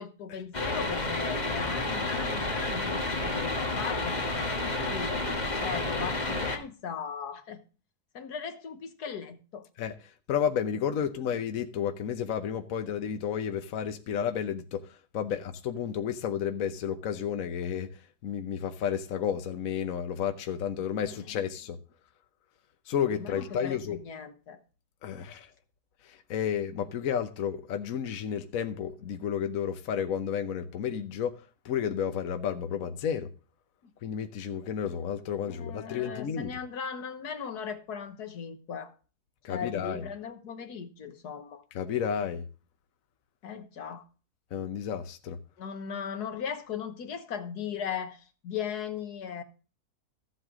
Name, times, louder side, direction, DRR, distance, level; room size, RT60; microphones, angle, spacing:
voice 1, 0.0-7.6 8.1-9.7 15.3-15.4 21.1-21.4 23.2-24.6 33.8-33.9 35.5-38.9 39.5-41.6 43.4-44.1 45.6-49.4, left 7 dB, 80° left, 1.7 m, -38 dB
sound 1, 0.5-6.6, left 2 dB, 30° left, 1.6 m, -30 dB
voice 2, 9.8-21.8 22.9-24.0 25.0-25.5 26.0-31.4 31.6-33.3 34.0-36.5 39.4-40.0 41.7-42.4 44.5-45.4, left 8 dB, 65° left, 1.2 m, -32 dB
14.0 x 8.1 x 3.7 m
omnidirectional pair, 1.7 m